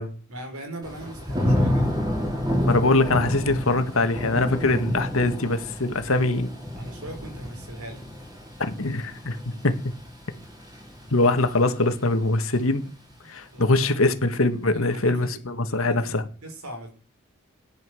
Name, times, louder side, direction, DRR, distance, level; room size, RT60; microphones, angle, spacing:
voice 1, 0.3-2.0 5.9-6.2 6.7-8.0 9.3-9.4 12.8-12.9 13.5-13.9 14.7-15.4 15.7-16.1 16.4-16.9, right 1 dB, 90° right, 5.2 m, -40 dB
Thunder / Rain, 0.8-11.8 12.2-12.6, left 1 dB, 20° right, 4.1 m, -29 dB
voice 2, 2.6-6.5 8.6-9.7 11.1-12.9 13.3-16.2, left 2 dB, 75° left, 1.8 m, -23 dB
17.5 x 10.5 x 6.4 m
head